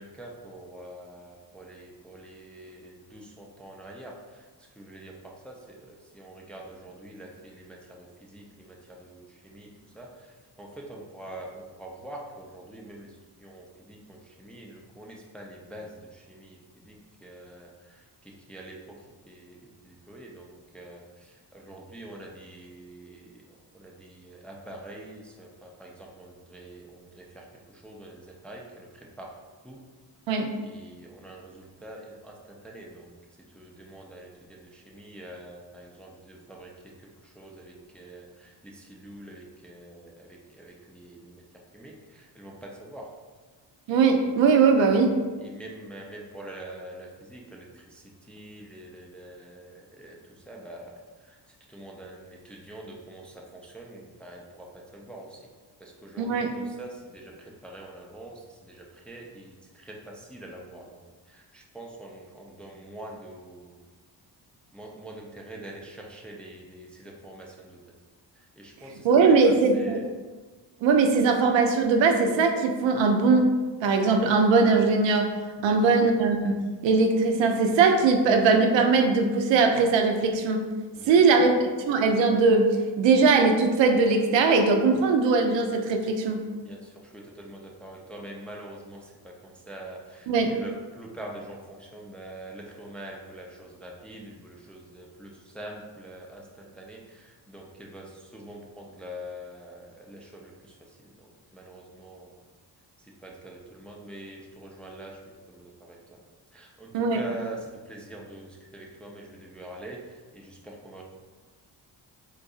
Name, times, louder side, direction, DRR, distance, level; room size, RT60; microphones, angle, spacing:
voice 1, 0.0-4.1 4.8-5.1 5.4-9.7 9.9-10.1 10.6-13.1 13.4-16.6 16.9-17.0 17.2-17.7 18.5-18.8 19.3-19.6 19.8-21.0 21.5-23.2 23.7-27.4 27.8-28.9 29.2-29.3 29.6-29.8 30.6-32.3 32.6-33.1 33.5-36.7 37.4-41.4 41.7-43.1 45.4-50.2 50.5-51.0 51.7-55.4 55.8-57.3 57.6-61.0 61.3-63.7 64.7-67.8 68.6-69.1 69.4-70.0 75.7-76.0 80.9-81.5 86.6-89.1 89.4-100.5 101.5-102.3 103.2-105.2 105.5-106.0 106.5-110.0 110.3-111.0, right 1 dB, 5° left, -2 dB, 0.4 m, -44 dB
voice 2, 43.9-45.2 56.2-56.5 69.0-70.0 70.8-73.5 73.8-75.3 75.6-76.6 76.8-80.6 81.1-81.6 81.9-82.7 83.0-86.4 90.3-90.5 106.9-107.2, right 4 dB, 70° right, 4 dB, 0.5 m, -20 dB
3.8 x 2.6 x 2.3 m, 1.3 s
cardioid pair, 65°, 46 cm